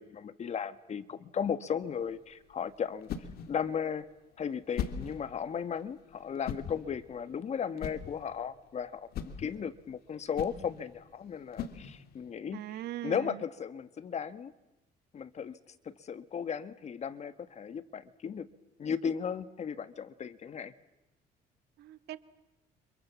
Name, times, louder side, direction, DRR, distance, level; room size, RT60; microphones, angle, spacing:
voice 1, 0.0-3.1 3.5-4.1 4.4-14.5 15.1-15.6 15.8-18.5 18.8-20.7, left 7 dB, 40° left, 13 dB, 1.5 m, -36 dB
sound 1, 1.8-12.3, left 7 dB, 65° left, 2.6 m, -42 dB
voice 2, 12.5-13.4 21.8-22.2, right 14 dB, 75° right, 12 dB, 1.7 m, -40 dB
29.5 x 27.0 x 7.4 m, 0.96 s
cardioid pair, 110°, 17 cm